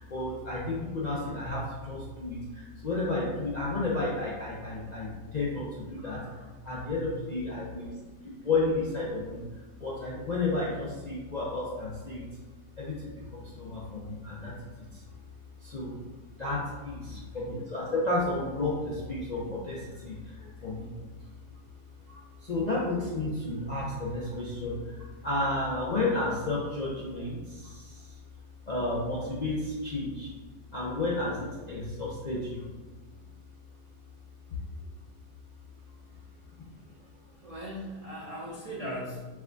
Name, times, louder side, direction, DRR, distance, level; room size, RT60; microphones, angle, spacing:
voice 1, 0.0-12.3 12.8-16.0 16.4-28.2 28.7-30.3 30.7-32.7 34.5-34.8 36.4-37.4, left 2 dB, 60° left, -7 dB, 0.4 m, -33 dB
voice 2, 6.6-7.6 17.0-17.6 37.4-39.3, equal, 70° right, -7 dB, 0.3 m, -40 dB
4.7 x 2.3 x 3.7 m, 1.3 s
omnidirectional pair, 1.7 m